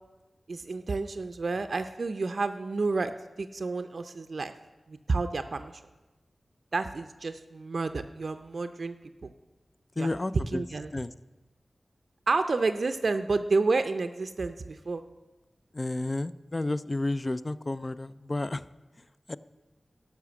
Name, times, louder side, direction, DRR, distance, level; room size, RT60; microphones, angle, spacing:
voice 1, 0.5-3.1 3.4-4.5 4.9-5.8 6.7-9.0 9.2-9.3 10.0-10.1 10.5-10.9 12.3-15.0, right 3 dB, 65° right, 9 dB, 0.5 m, -30 dB
voice 2, 10.0-10.6 10.9-11.1 15.7-18.6 19.3-19.4, left 2 dB, 30° left, 15 dB, 0.4 m, -31 dB
12.5 x 5.9 x 7.0 m, 1.1 s
wide cardioid pair, 90°, 0 cm